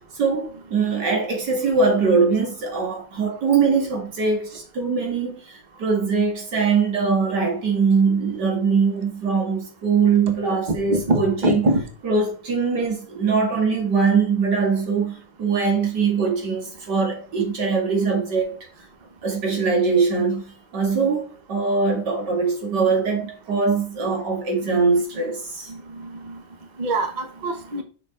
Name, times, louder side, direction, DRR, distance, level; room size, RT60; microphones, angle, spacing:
voice 1, 0.1-11.5 12.0-18.6 19.2-25.7, right 5 dB, 85° right, 2.7 m, -22 dB
voice 2, 10.9-11.8 26.3-26.4 26.8-27.8, right 2 dB, 30° right, 1.1 m, -23 dB
6.3 x 5.7 x 3.8 m
omnidirectional pair, 1.8 m